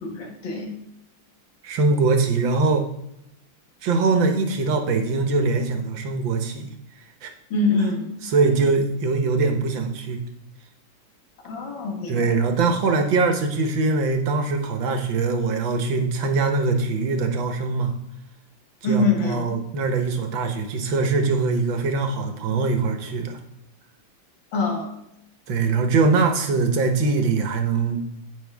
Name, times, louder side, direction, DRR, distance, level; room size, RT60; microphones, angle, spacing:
voice 1, 0.0-0.7 7.5-8.1 11.4-12.3 18.8-19.5 24.5-24.9, left 3 dB, 60° left, 1 dB, 2.4 m, -24 dB
voice 2, 1.6-2.9 3.8-6.7 7.2-7.3 8.3-10.2 12.1-17.9 18.8-23.4 25.5-28.0, right 4 dB, 65° right, 5 dB, 1.9 m, -22 dB
15.5 x 5.9 x 3.5 m, 0.82 s
omnidirectional pair, 2.4 m